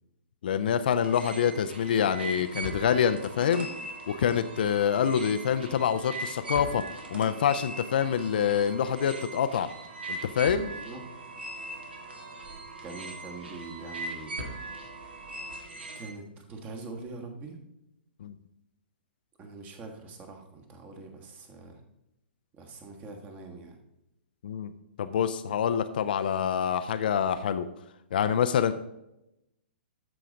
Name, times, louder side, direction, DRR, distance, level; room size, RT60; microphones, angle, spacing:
voice 1, 0.4-3.7 4.1-6.8 7.1-9.7 10.1-10.7 18.2-18.3 24.4-24.7 25.0-27.7 28.1-28.7, left 8 dB, 55° left, 11 dB, 0.5 m, -26 dB
sound 1, 1.0-16.1, right 2 dB, 70° right, 2.0 m, -40 dB
voice 2, 10.7-11.1 12.8-14.4 15.9-17.6 19.4-21.8 22.6-23.8, right 3 dB, 25° right, 3 dB, 1.4 m, -43 dB
13.0 x 5.0 x 3.8 m, 0.88 s
figure-of-eight pair, 115°, 6 cm